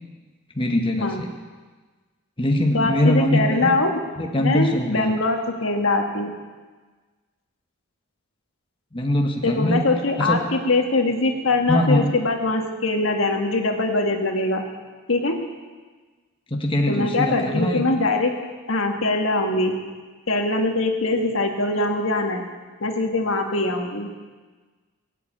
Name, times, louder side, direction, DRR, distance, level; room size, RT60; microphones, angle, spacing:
voice 1, 0.5-1.3 2.4-3.7 4.2-5.1 8.9-9.8 10.2-10.4 11.7-12.1 16.5-17.8, left 1 dB, 25° left, 1 dB, 1.4 m, -22 dB
voice 2, 2.7-4.0 4.4-6.3 9.4-14.6 15.1-15.4 16.9-18.3 18.7-19.8 20.3-22.4 22.8-24.1, left 2 dB, 70° left, 3 dB, 1.9 m, -22 dB
20.5 x 7.8 x 8.7 m, 1.4 s
head